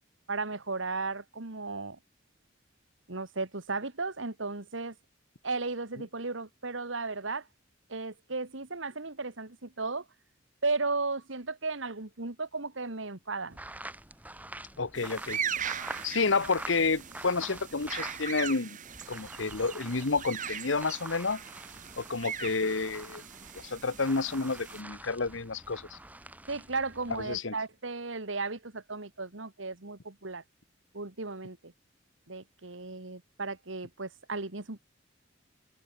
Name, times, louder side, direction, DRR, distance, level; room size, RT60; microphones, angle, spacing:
voice 1, 0.3-2.0 3.1-5.0 5.4-7.5 7.9-10.1 10.6-13.6 26.5-30.4 30.9-31.7 32.3-34.8, right 3 dB, 80° right, 2.2 m, -35 dB
sound 1, 13.5-18.5 18.8-27.4, right 1 dB, 10° right, 6.4 m, -46 dB
voice 2, 14.8-15.4 16.0-18.8 19.1-21.4 22.0-23.2 23.6-26.0 27.3-27.5, left 4 dB, 75° left, 1.2 m, -30 dB
sound 2, 14.9-24.8, right 8 dB, 40° right, 1.7 m, -40 dB
open air
head